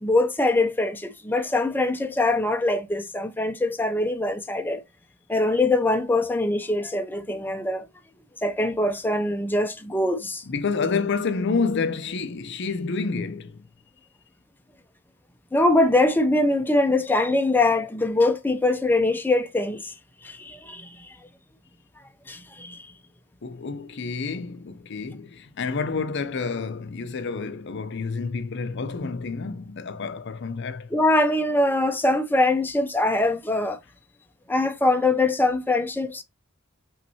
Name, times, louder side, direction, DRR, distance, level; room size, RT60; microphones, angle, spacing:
voice 1, 0.0-4.8 5.3-7.9 8.4-10.4 15.5-19.9 20.2-21.1 22.3-22.9 30.9-33.8 34.5-36.2, left 2 dB, 10° left, 0.5 m, -23 dB
voice 2, 10.4-13.6 23.4-30.9, left 4 dB, 55° left, 0.6 m, -29 dB
5.7 x 3.1 x 2.8 m
head